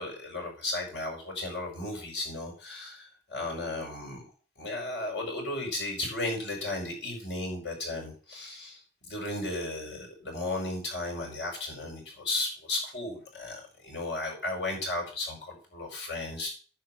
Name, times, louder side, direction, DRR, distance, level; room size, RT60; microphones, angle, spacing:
voice 1, 0.0-4.2 4.6-16.5, left 2 dB, 85° left, -1 dB, 5.1 m, -35 dB
10.5 x 4.8 x 7.7 m, 0.39 s
head